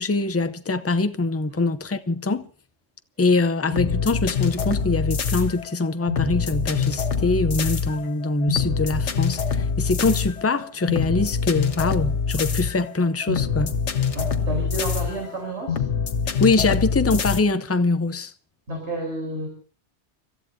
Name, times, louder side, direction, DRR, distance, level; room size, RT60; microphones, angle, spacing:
voice 1, 0.0-2.5 3.2-13.8 16.4-18.3, left 3 dB, 15° left, 0.5 m, -23 dB
sound 1, 3.7-17.4, left 6 dB, 85° left, 1.4 m, -25 dB
voice 2, 14.1-15.9 18.7-19.5, right 1 dB, 75° right, 4.6 m, -31 dB
30.0 x 14.0 x 2.7 m
omnidirectional pair, 1.2 m